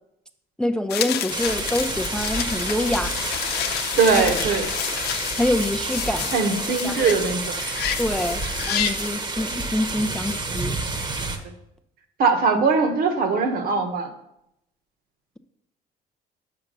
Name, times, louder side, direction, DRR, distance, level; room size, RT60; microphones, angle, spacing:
voice 1, 0.6-3.2 4.2-4.4 5.4-6.3 6.8-7.2 8.0-8.4 8.7-10.7, left 1 dB, 5° left, 8 dB, 0.4 m, -26 dB
sound 1, 0.9-9.1, left 9 dB, 70° left, 0.7 m, -29 dB
sound 2, 1.3-11.4, right 3 dB, 25° right, 1.0 m, -29 dB
voice 2, 4.0-4.7 6.3-7.5 12.2-14.1, right 4 dB, 60° right, 6 dB, 1.2 m, -21 dB
5.9 x 5.7 x 6.6 m, 0.81 s
cardioid pair, 110°, 17 cm